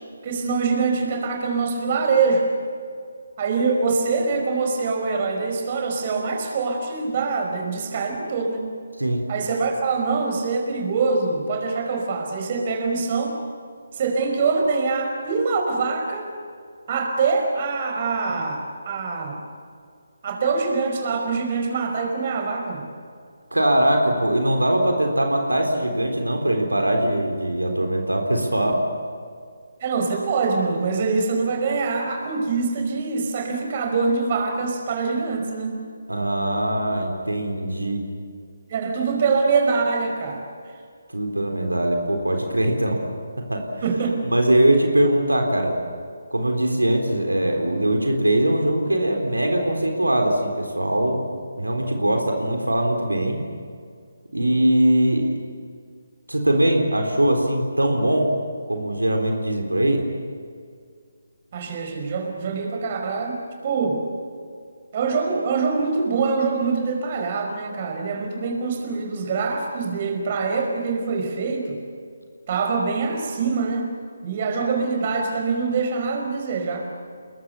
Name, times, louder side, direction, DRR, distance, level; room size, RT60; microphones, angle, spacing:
voice 1, 0.2-2.5 3.4-8.7 9.3-13.4 13.9-16.3 16.9-19.4 20.2-22.9 29.8-35.8 38.7-40.4 43.8-44.2 61.5-63.4 63.6-64.0 64.9-71.8 72.5-73.8 74.2-76.9, right 4 dB, 35° right, 3 dB, 5.1 m, -24 dB
voice 2, 23.5-28.8 36.1-38.0 41.1-43.0 43.5-43.6 44.3-45.8 46.3-51.3 51.6-53.4 54.3-55.3 56.3-58.3 58.7-60.0, right 1 dB, 85° right, 3 dB, 3.9 m, -21 dB
29.5 x 22.0 x 7.0 m, 2.2 s
figure-of-eight pair, 145°, 0 cm